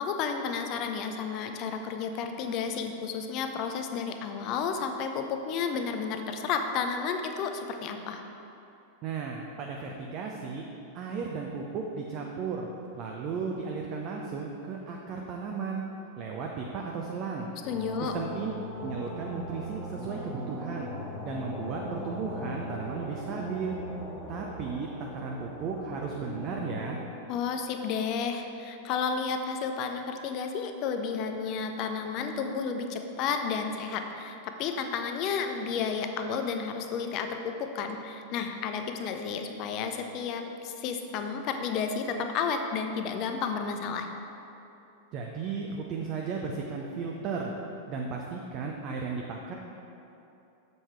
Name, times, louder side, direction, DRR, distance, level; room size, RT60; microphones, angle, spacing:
voice 1, 0.0-8.2 17.6-18.1 27.3-44.1, left 6 dB, 40° left, 6 dB, 0.6 m, -32 dB
voice 2, 9.0-10.7 10.9-12.7 13.0-15.8 16.2-17.5 18.0-18.5 18.8-20.9 21.2-23.8 24.3-27.0 45.1-47.5 47.9-49.5, right 5 dB, 40° right, 0 dB, 0.6 m, -35 dB
sound 1, 17.6-27.0, equal, 5° left, 1.4 m, -40 dB
7.2 x 5.3 x 4.5 m, 2.9 s
figure-of-eight pair, 90°, 0 cm